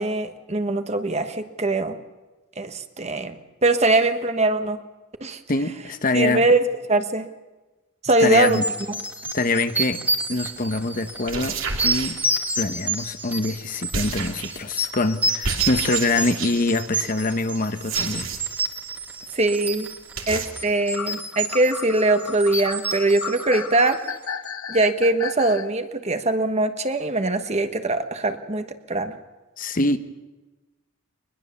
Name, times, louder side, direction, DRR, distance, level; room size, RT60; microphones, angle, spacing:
voice 1, 0.0-2.0 2.6-4.8 5.2-5.4 6.1-7.3 8.0-8.6 19.3-19.9 20.3-24.0 24.7-29.2, right 2 dB, 30° right, 8 dB, 1.3 m, -22 dB
voice 2, 5.5-6.5 8.2-8.6 9.3-10.0 10.3-11.6 11.8-12.2 12.6-18.3 29.6-30.0, left 2 dB, 40° left, 9 dB, 1.0 m, -24 dB
sound 1, 8.4-24.2, right 2 dB, 10° right, 1.6 m, -29 dB
sound 2, 10.4-10.6 11.1-12.7 13.9-14.7 15.4-16.8 17.7-18.7 19.0-19.1 19.4-19.5 19.7-19.8 20.2-20.5, right 4 dB, 70° right, 2.7 m, -31 dB
sound 3, 20.9-25.7, left 6 dB, 75° left, 1.0 m, -34 dB
22.5 x 21.0 x 7.1 m, 1.2 s
head